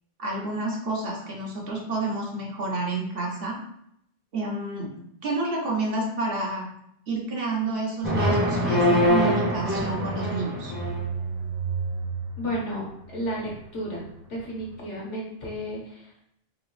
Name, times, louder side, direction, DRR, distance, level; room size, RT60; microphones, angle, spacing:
voice 1, 0.2-3.6 4.3-6.7 7.1-10.7, right 2 dB, 55° right, -1 dB, 1.0 m, -29 dB
sound 1, 8.0-11.0, equal, 10° right, 0.7 m, -23 dB
sound 2, 8.2-14.8, right 5 dB, 75° right, 0.3 m, -35 dB
voice 2, 12.4-14.0 14.3-16.4, equal, 70° left, -3 dB, 1.4 m, -33 dB
3.8 x 2.9 x 3.1 m, 0.76 s
omnidirectional pair, 1.3 m